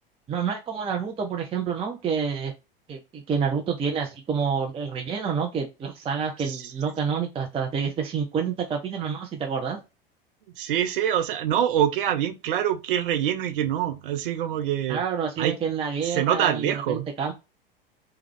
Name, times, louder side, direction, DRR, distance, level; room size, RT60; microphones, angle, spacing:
voice 1, 0.3-2.5 2.9-9.8 14.9-17.3, right 6 dB, 20° right, 0.6 m, -28 dB
voice 2, 10.6-15.0 15.4-15.5 16.0-17.1, right 10 dB, 65° right, 0.7 m, -25 dB
3.2 x 2.3 x 3.2 m
figure-of-eight pair, 85°, 29 cm